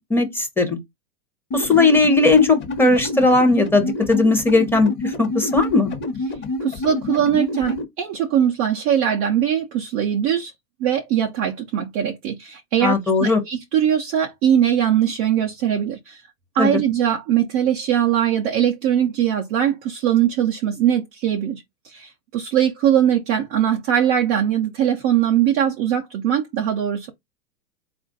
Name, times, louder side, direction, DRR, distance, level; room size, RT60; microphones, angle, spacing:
voice 1, 0.1-0.8 1.5-5.9 12.8-13.4 16.6-16.7, left 3 dB, 5° left, 0.8 m, -17 dB
sound 1, 1.5-7.8, left 1 dB, 25° left, 1.1 m, -27 dB
voice 2, 6.6-10.5 10.8-16.2 16.6-27.1, right 10 dB, 20° right, 0.3 m, -21 dB
4.2 x 2.4 x 3.8 m
supercardioid pair, 140°, 43 cm